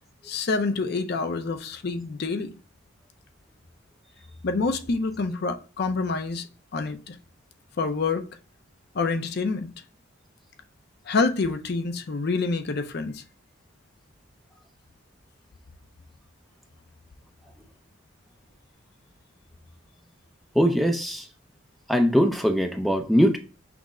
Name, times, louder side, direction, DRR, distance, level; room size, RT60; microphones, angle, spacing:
voice 1, 0.2-2.5 4.4-6.5 6.7-7.2 7.8-8.2 8.9-9.7 11.1-13.2, left 4 dB, 50° left, 0.5 m, -27 dB
voice 2, 20.6-21.2 21.9-23.4, equal, ahead, 0.4 m, -21 dB
6.0 x 2.1 x 3.6 m
head